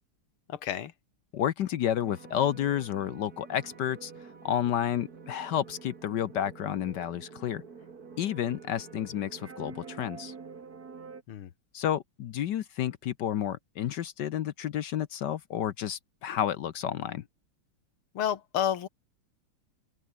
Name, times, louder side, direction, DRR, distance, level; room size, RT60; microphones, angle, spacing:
voice 1, 0.5-0.9 11.3-11.5 18.1-18.9, left 10 dB, 90° left, 2.2 m, -30 dB
voice 2, 1.3-4.1 4.4-7.6 8.2-10.3 11.7-17.2, left 10 dB, 65° left, 1.3 m, -31 dB
sound 1, 2.0-11.2, right 5 dB, 45° right, 2.7 m, -47 dB
open air
omnidirectional pair, 2.3 m